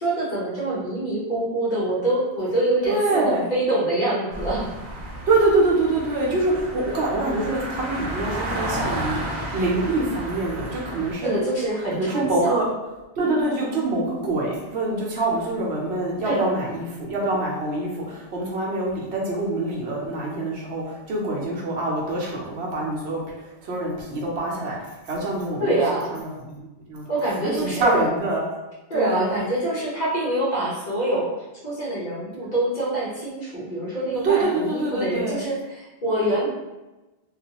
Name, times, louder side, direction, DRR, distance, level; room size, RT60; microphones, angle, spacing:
voice 1, 0.0-4.7 11.2-12.6 16.2-16.6 25.6-26.2 27.1-28.1 28.9-31.3 31.6-36.5, right 1 dB, 45° left, -7 dB, 0.9 m, -25 dB
voice 2, 2.8-3.4 5.3-11.4 11.9-12.6 13.2-27.1 27.4-28.4 28.9-29.3 34.2-35.4, right 2 dB, 75° right, -3 dB, 0.9 m, -25 dB
sound 1, 4.3-11.1, right 1 dB, 35° right, 0.5 m, -32 dB
2.3 x 2.3 x 2.8 m, 1.1 s
omnidirectional pair, 1.1 m